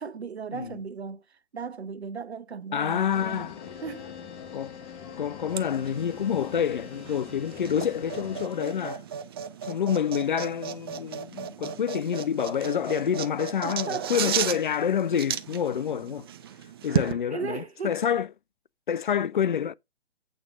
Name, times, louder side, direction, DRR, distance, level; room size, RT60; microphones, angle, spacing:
voice 1, 0.0-3.5 3.8-4.1 8.8-9.0 13.6-14.3 16.9-18.0, right 6 dB, 70° right, 1.1 m, -37 dB
voice 2, 2.7-3.6 4.5-4.8 5.2-9.0 9.6-16.3 16.8-18.3 18.9-19.7, left 8 dB, 50° left, 0.5 m, -27 dB
sound 1, 3.1-8.4, left 8 dB, 25° left, 1.1 m, -44 dB
Bowed string instrument, 3.4-9.1, left 7 dB, 85° left, 1.3 m, -47 dB
sound 2, 5.5-17.1, right 9 dB, 20° right, 0.6 m, -35 dB
8.7 x 4.9 x 6.4 m
figure-of-eight pair, 135°, 33 cm